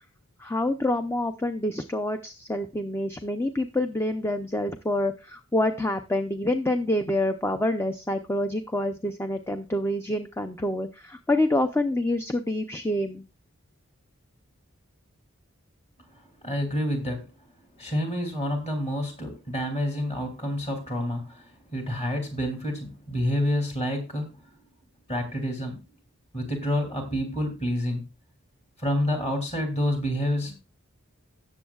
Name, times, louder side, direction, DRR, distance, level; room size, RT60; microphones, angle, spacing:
voice 1, 0.4-13.2, left 1 dB, 10° left, 8 dB, 0.5 m, -27 dB
voice 2, 16.1-17.3 17.8-24.4 25.1-25.8 26.3-28.0 28.8-30.5, equal, 30° left, 3 dB, 2.8 m, -28 dB
17.0 x 7.1 x 2.3 m, 0.29 s
head